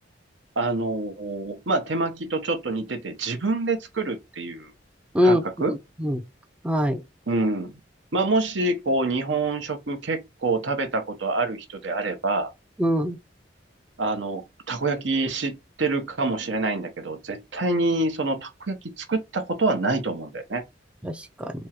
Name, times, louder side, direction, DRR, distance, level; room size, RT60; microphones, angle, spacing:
voice 1, 0.6-4.7 5.2-5.7 7.3-7.8 8.1-12.5 14.0-20.6, right 3 dB, 80° right, 0.9 m, -26 dB
voice 2, 5.7-6.2 6.6-7.0 12.8-13.2 21.0-21.5, equal, 5° right, 0.3 m, -23 dB
3.5 x 3.0 x 2.9 m
head